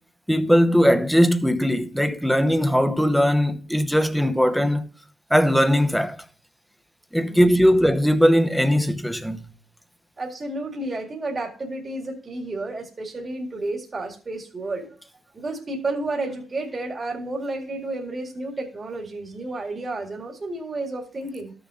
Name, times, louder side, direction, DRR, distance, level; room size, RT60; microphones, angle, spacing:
voice 1, 0.3-4.9 5.3-6.2 7.1-9.5, equal, ahead, 1.0 m, -19 dB
voice 2, 7.2-7.7 10.2-15.0 15.3-21.5, right 2 dB, 35° right, 2.1 m, -31 dB
13.5 x 6.9 x 2.5 m
cardioid pair, 90°, 0 cm